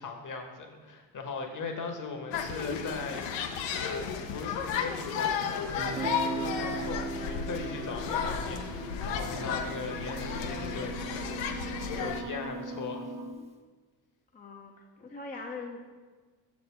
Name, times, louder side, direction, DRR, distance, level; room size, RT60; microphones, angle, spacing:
voice 1, 0.0-3.4 3.7-13.1, left 4 dB, 40° left, 4 dB, 1.2 m, -39 dB
sound 1, 2.3-12.2, left 7 dB, 60° left, 0.7 m, -34 dB
Guitar, 5.8-11.5, right 3 dB, 15° right, 0.8 m, -39 dB
sound 2, 8.2-13.3, right 2 dB, 40° right, 1.2 m, -41 dB
voice 2, 14.3-16.0, left 3 dB, 15° left, 1 dB, 0.6 m, -42 dB
6.5 x 4.2 x 4.4 m, 1.4 s
hypercardioid pair, 55°, 50 cm